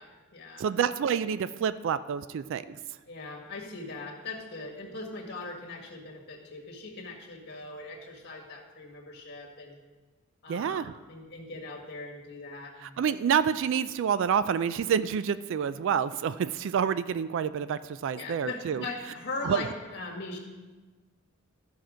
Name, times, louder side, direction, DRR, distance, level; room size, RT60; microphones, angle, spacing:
voice 1, 0.0-0.6 3.1-9.8 10.4-13.0 18.1-20.4, left 3 dB, 50° left, 0 dB, 1.8 m, -40 dB
voice 2, 0.6-2.8 10.5-10.9 12.8-18.8 19.4-19.6, right 7 dB, 60° right, 14 dB, 0.3 m, -28 dB
13.5 x 5.9 x 5.1 m, 1.3 s
head